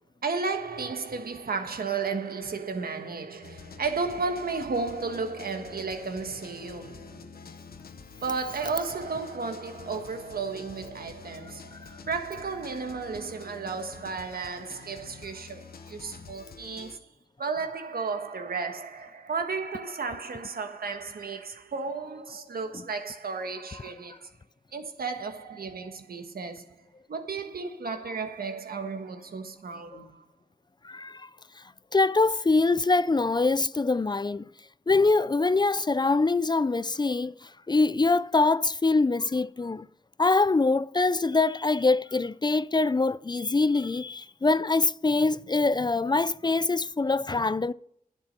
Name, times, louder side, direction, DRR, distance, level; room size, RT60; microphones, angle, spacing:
voice 1, 0.2-7.6 8.2-17.1 17.4-24.3 24.7-26.8 27.1-30.3, right 4 dB, 80° right, 1.5 m, -33 dB
sound 1, 3.4-17.0, left 5 dB, 80° left, 1.0 m, -48 dB
voice 2, 30.8-31.3 31.9-34.5 34.9-39.9 40.2-47.7, left 3 dB, 30° left, 0.4 m, -24 dB
10.5 x 8.4 x 5.5 m
wide cardioid pair, 65°, 15 cm